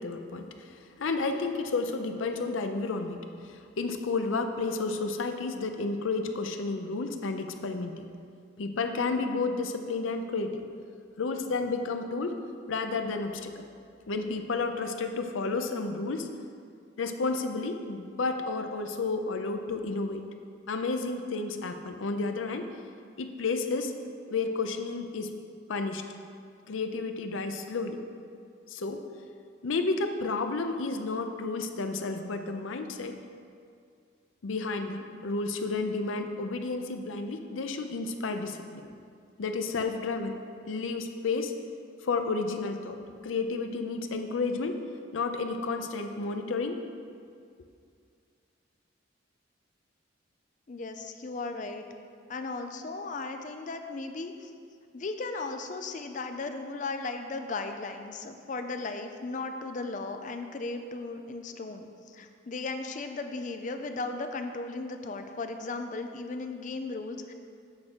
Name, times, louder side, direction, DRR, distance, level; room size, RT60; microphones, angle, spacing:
voice 1, 0.0-8.1 8.6-10.6 11.2-12.4 12.7-13.6 14.1-16.3 17.0-20.2 20.7-22.7 23.2-23.9 24.3-25.3 25.7-26.0 26.7-28.0 28.7-29.0 29.6-33.2 34.4-38.8 39.4-40.4 40.7-41.5 42.0-43.0 43.2-44.8 45.1-46.8, left 3 dB, 85° left, 7 dB, 0.6 m, -31 dB
voice 2, 50.7-51.9 52.3-54.5 54.9-67.3, left 3 dB, 40° left, 6 dB, 0.4 m, -36 dB
8.5 x 3.7 x 6.1 m, 2.3 s
head